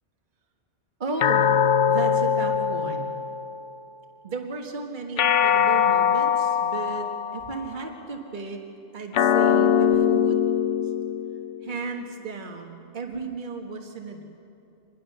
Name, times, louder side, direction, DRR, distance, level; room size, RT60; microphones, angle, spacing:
voice 1, 1.0-1.5 1.9-3.1 4.2-8.6 8.9-10.4 11.6-14.2, right 4 dB, 45° right, 2 dB, 1.6 m, -34 dB
sound 1, 1.2-3.8 5.2-7.7 9.1-11.8, left 8 dB, 90° left, 1.1 m, -22 dB
24.5 x 20.5 x 6.6 m, 2.7 s
omnidirectional pair, 1.2 m